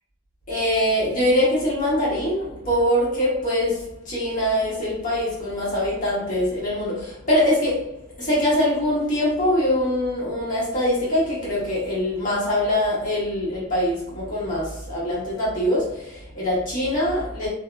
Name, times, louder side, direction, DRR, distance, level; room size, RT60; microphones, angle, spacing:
voice 1, 0.5-17.5, left 1 dB, 40° left, -8 dB, 1.4 m, -23 dB
2.8 x 2.8 x 2.3 m, 0.72 s
head